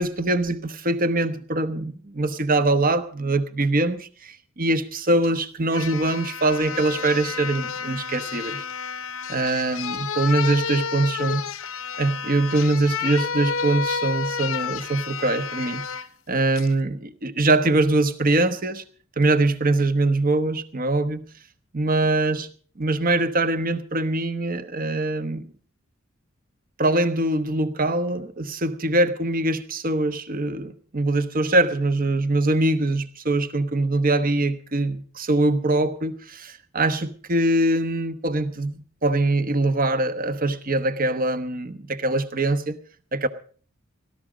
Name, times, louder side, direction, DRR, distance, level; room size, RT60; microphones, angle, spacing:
voice 1, 0.0-8.6 9.3-11.4 12.0-15.8 16.3-18.8 19.2-21.3 21.7-22.5 22.8-25.5 26.8-42.8 43.1-43.3, right 2 dB, 45° right, 1.1 m, -23 dB
sound 1, 5.2-5.3 5.7-16.1 16.6-16.7, left 6 dB, 80° left, 0.8 m, -30 dB
17.5 x 12.5 x 5.0 m
head